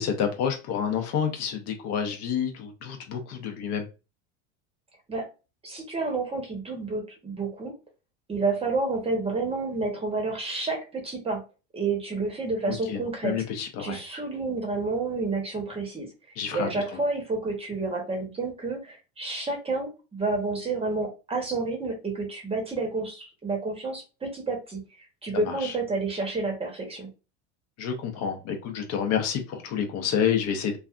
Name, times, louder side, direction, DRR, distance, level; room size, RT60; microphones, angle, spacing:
voice 1, 0.0-3.9 12.6-14.0 16.4-16.7 25.4-25.7 27.8-30.8, left 8 dB, 45° left, 0.7 m, -29 dB
voice 2, 5.6-7.7 8.3-11.4 11.7-13.4 13.8-24.8 25.2-27.1, right 3 dB, 15° right, 0.9 m, -30 dB
3.2 x 2.5 x 2.3 m
supercardioid pair, 130°, 36 cm